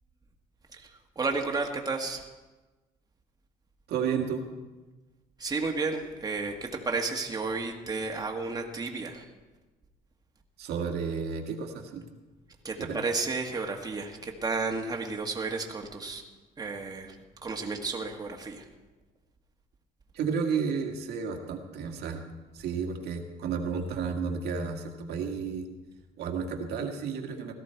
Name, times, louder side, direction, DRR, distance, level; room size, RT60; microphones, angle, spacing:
voice 1, 1.2-2.2 5.4-9.2 12.6-16.2 16.6-17.1 17.4-18.6, right 4 dB, 20° right, 2 dB, 1.6 m, -32 dB
voice 2, 3.9-4.4 10.6-12.1 12.8-13.1 20.1-22.2 22.5-25.7 26.2-27.5, right 6 dB, 75° right, 2 dB, 1.8 m, -32 dB
17.0 x 13.5 x 4.5 m, 1.2 s
cardioid pair, 110°, 17 cm